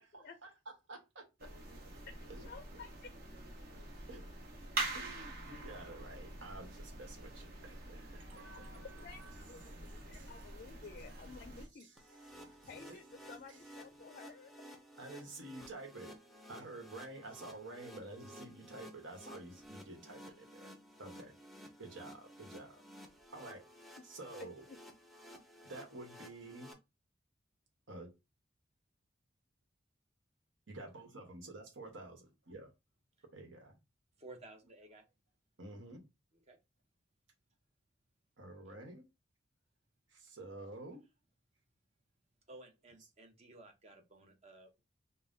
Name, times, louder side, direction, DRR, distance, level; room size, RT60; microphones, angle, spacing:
voice 1, 0.1-0.5 0.9-1.5 2.3-2.5 4.1-4.3 4.9-10.6 11.0-11.3 11.8-13.0 13.5-13.6 15.0-16.1 16.5-20.7 21.0-21.3 21.8-22.8 23.3-23.6 24.0-24.7 25.6-26.7 27.9-28.1 30.7-32.7 33.3-33.8 35.6-36.0 38.4-39.1 40.1-41.0, right 2 dB, 85° right, 1.2 m, -50 dB
sound 1, 1.4-11.7, right 2 dB, 55° right, 1.2 m, -45 dB
voice 2, 2.1-3.1 8.5-8.6 9.0-11.9 12.7-14.5 24.0-24.1 24.4-24.8, left 5 dB, 50° left, 0.4 m, -53 dB
sound 2, 12.0-26.7, equal, ahead, 0.5 m, -54 dB
voice 3, 34.2-35.0 36.5-36.6 42.5-44.8, right 2 dB, 35° right, 0.8 m, -55 dB
5.3 x 2.2 x 2.6 m
head